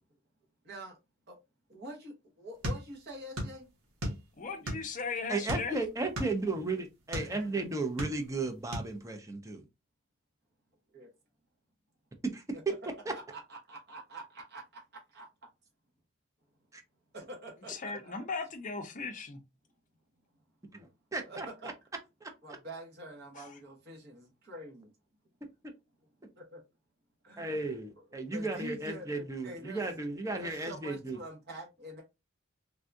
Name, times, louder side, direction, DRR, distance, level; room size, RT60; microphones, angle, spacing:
voice 1, 0.6-1.0 1.3-1.4 1.7-3.7 7.1-7.5 10.9-11.1 13.1-14.8 15.1-15.3 17.1-18.3 21.3-21.7 22.4-24.9 26.4-26.6 27.2-27.6 28.3-29.8 30.3-32.0, right 1 dB, 50° right, 1.0 m, -46 dB
sound 1, 2.6-3.6 3.8-5.0 5.5-7.3 7.8-8.4 8.7-8.9, equal, 80° right, 1.2 m, -35 dB
voice 2, 4.4-5.8 17.7-19.4 23.3-23.6, left 4 dB, 40° left, 0.5 m, -37 dB
voice 3, 5.3-9.6 12.3-12.4 16.7-16.8 20.7-21.5 22.2-22.3 25.6-25.7 27.4-31.2, right 2 dB, 15° right, 0.5 m, -35 dB
3.5 x 2.3 x 2.6 m
head